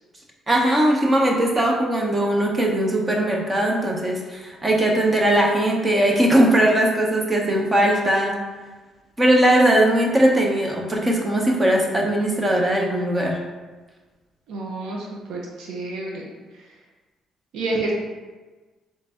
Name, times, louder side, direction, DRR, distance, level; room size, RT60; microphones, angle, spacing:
voice 1, 0.5-8.4 9.2-13.4, right 1 dB, 20° right, 0 dB, 0.7 m, -19 dB
voice 2, 14.5-16.7 17.5-17.9, right 2 dB, 85° right, -2 dB, 0.8 m, -30 dB
3.9 x 3.2 x 3.5 m, 1.3 s
cardioid pair, 125°, 0 cm